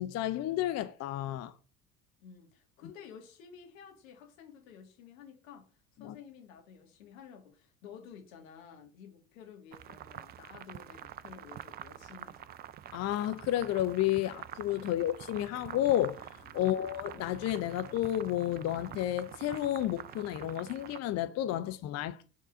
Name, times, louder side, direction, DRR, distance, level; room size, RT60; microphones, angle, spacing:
voice 1, 0.0-1.5 6.0-6.2 12.9-16.3 16.5-22.2, left 13 dB, 40° left, 0.6 m, -31 dB
voice 2, 2.2-12.5 14.9-15.1 16.6-16.9, left 7 dB, 70° left, 2.2 m, -52 dB
sound 1, 9.7-21.0, right 11 dB, 25° right, 0.3 m, -47 dB
sound 2, 10.2-20.2, left 1 dB, 85° left, 2.4 m, -60 dB
6.5 x 3.8 x 5.1 m
figure-of-eight pair, 70°, 43 cm